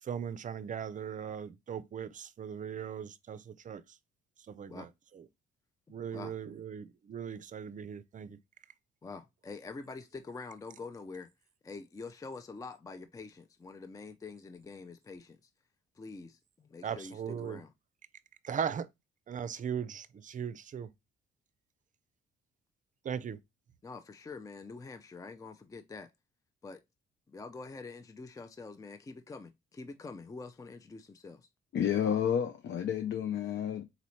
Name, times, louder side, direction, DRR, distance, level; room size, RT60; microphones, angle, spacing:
voice 1, 0.0-4.0 4.5-5.2 5.9-8.4 16.8-17.6 18.4-18.9 19.3-20.9 23.0-23.4, right 7 dB, 40° right, 0.5 m, -39 dB
voice 2, 5.9-6.3 9.0-11.3 11.6-15.4 16.0-17.7 23.8-26.1 26.6-26.8 27.3-31.5, left 4 dB, 15° left, 0.4 m, -46 dB
voice 3, 31.7-33.8, left 9 dB, 65° left, 0.6 m, -30 dB
4.0 x 3.0 x 4.1 m
cardioid pair, 90°, 20 cm